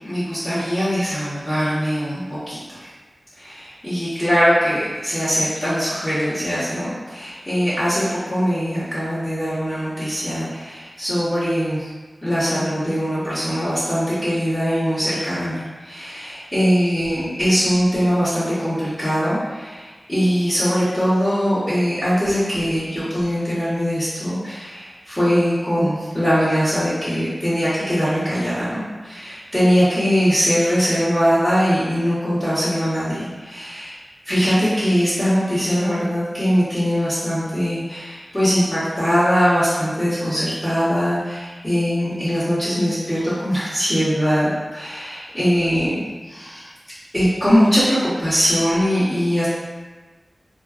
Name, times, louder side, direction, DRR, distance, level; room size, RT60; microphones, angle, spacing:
voice 1, 0.0-2.9 3.4-11.9 12.2-34.0 34.2-46.7 47.1-49.5, equal, 15° left, -16 dB, 1.0 m, -21 dB
2.5 x 2.2 x 2.3 m, 1.3 s
wide cardioid pair, 75°, 0 cm